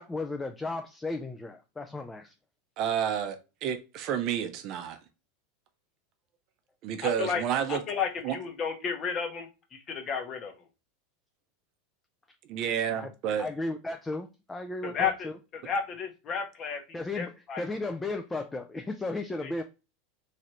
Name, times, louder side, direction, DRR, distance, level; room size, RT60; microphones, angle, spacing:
voice 1, 0.0-2.3 13.0-13.1 13.4-15.3 16.9-19.6, left 2 dB, 10° left, 0.3 m, -35 dB
voice 2, 2.8-5.0 6.8-7.8 8.2-8.4 12.5-13.5, right 9 dB, 50° right, 0.5 m, -30 dB
voice 3, 7.0-7.4 7.7-10.5 14.8-15.3 15.6-16.8 17.1-17.6 19.4-19.6, left 6 dB, 35° left, 0.8 m, -32 dB
3.2 x 2.5 x 2.8 m
supercardioid pair, 115°, 0 cm